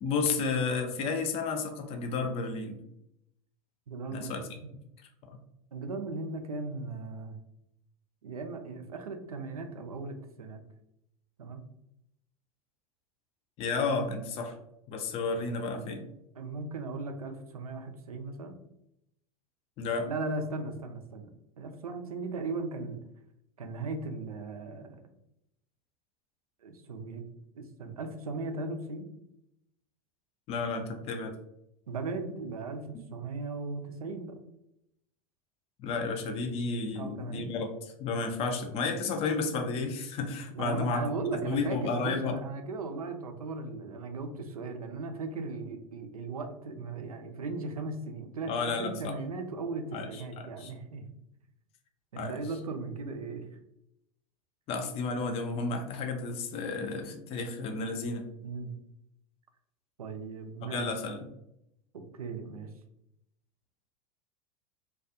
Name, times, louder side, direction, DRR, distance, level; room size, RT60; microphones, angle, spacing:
voice 1, 0.0-2.8 4.1-4.6 13.6-14.6 14.9-16.0 19.8-20.1 30.5-31.3 32.9-33.0 35.8-41.0 41.3-42.3 48.5-49.2 49.9-50.2 50.6-50.7 52.2-52.4 54.7-58.2 60.7-61.2, left 4 dB, 35° left, 5 dB, 0.5 m, -32 dB
voice 2, 3.9-4.4 4.6-4.7 5.7-7.4 8.2-10.6 11.4-11.6 16.4-18.6 20.1-23.0 23.6-25.0 26.6-27.2 27.5-29.1 31.9-34.4 37.0-37.5 40.5-51.0 52.1-53.4 58.4-58.8 60.0-60.9 61.9-62.7, right 3 dB, 80° right, 6 dB, 0.4 m, -37 dB
2.3 x 2.3 x 2.6 m, 0.81 s
figure-of-eight pair, 85°, 18 cm